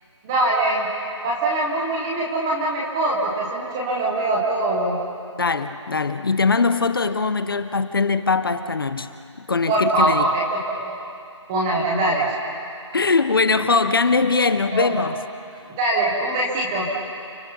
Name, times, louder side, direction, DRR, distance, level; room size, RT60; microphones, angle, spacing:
voice 1, 0.2-0.9 1.2-5.0 9.7-10.9 11.5-12.4 14.7-14.9 15.8-16.9, right 2 dB, 5° right, -3 dB, 0.7 m, -22 dB
voice 2, 5.4-9.1 9.4-10.3 12.9-15.2, left 4 dB, 45° left, 11 dB, 1.0 m, -21 dB
30.0 x 20.5 x 5.5 m, 2.5 s
figure-of-eight pair, 175°, 16 cm